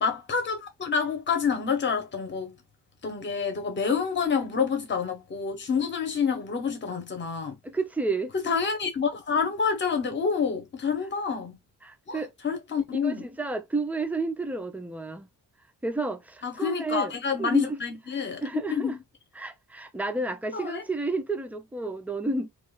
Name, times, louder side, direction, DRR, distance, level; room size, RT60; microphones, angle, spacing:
voice 1, 0.0-2.5 3.0-7.6 8.4-11.6 12.1-13.2 16.4-18.4 18.7-19.0 20.5-20.8, left 6 dB, 30° left, 0.8 m, -28 dB
voice 2, 7.6-8.3 11.8-12.3 13.0-15.3 15.8-17.1 17.4-17.8 18.4-19.0 19.4-22.5, right 3 dB, 5° right, 0.4 m, -31 dB
2.9 x 2.4 x 3.2 m
wide cardioid pair, 175°, 35 cm